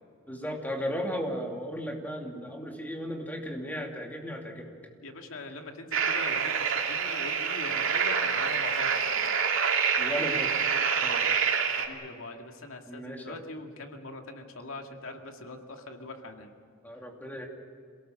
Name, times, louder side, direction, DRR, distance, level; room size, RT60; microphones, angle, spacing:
voice 1, 0.3-4.7 10.0-10.5 11.0-11.3 12.9-13.4 16.8-17.5, equal, 10° left, 1 dB, 2.6 m, -35 dB
voice 2, 5.0-9.4 11.8-16.5, left 2 dB, 85° left, 4 dB, 2.2 m, -42 dB
sound 1, 5.9-11.9, right 6 dB, 75° right, 2.4 m, -27 dB
27.5 x 18.0 x 7.6 m, 2.3 s
head